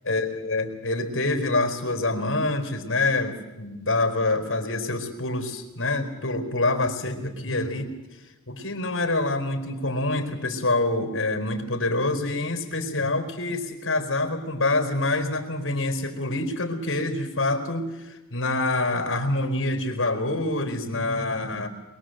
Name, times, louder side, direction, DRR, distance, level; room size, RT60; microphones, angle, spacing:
voice 1, 0.0-7.9 8.5-21.7, left 2 dB, 55° left, 5 dB, 4.0 m, -26 dB
23.0 x 22.5 x 7.8 m, 1.1 s
head